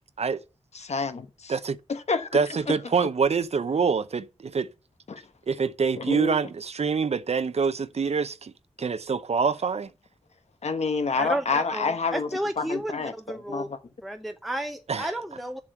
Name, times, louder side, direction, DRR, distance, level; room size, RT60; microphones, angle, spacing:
voice 1, 0.7-1.5 1.9-2.4 2.7-2.8 5.1-5.2 6.0-6.3 10.6-12.3 12.6-13.8, left 4 dB, 65° left, 1.2 m, -28 dB
voice 2, 2.3-4.7 5.5-8.5 8.8-9.9 14.9-15.1, right 5 dB, 65° right, 0.7 m, -25 dB
voice 3, 11.2-13.7 14.0-15.6, right 1 dB, ahead, 0.7 m, -32 dB
7.3 x 6.2 x 7.8 m
wide cardioid pair, 95°, 12 cm